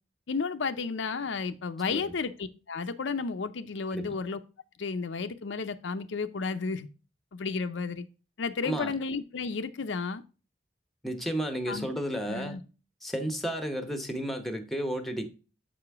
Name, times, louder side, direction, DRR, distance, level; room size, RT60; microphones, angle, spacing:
voice 1, 0.3-4.4 4.8-6.9 7.3-8.0 8.4-10.2 11.7-11.9 12.3-12.6, left 4 dB, 70° left, 0.5 m, -32 dB
voice 2, 11.0-12.6 13.0-15.3, right 1 dB, ahead, 0.9 m, -32 dB
7.5 x 5.0 x 3.4 m
head